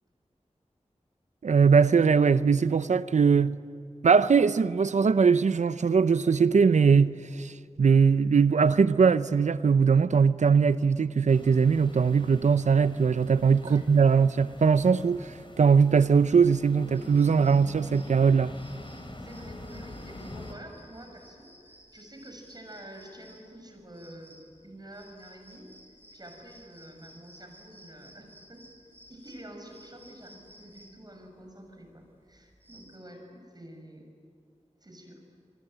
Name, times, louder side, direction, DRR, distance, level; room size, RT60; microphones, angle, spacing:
voice 1, 1.4-3.6 4.0-18.5, right 5 dB, 80° right, 0.6 m, -21 dB
sound 1, 11.3-20.5, left 1 dB, 45° left, 3.6 m, -45 dB
sound 2, 16.9-33.0, equal, 20° right, 5.9 m, -56 dB
voice 2, 19.2-28.6 29.1-34.1 34.8-35.2, right 1 dB, 35° right, 6.6 m, -48 dB
27.5 x 22.0 x 9.1 m
wide cardioid pair, 50°, 12 cm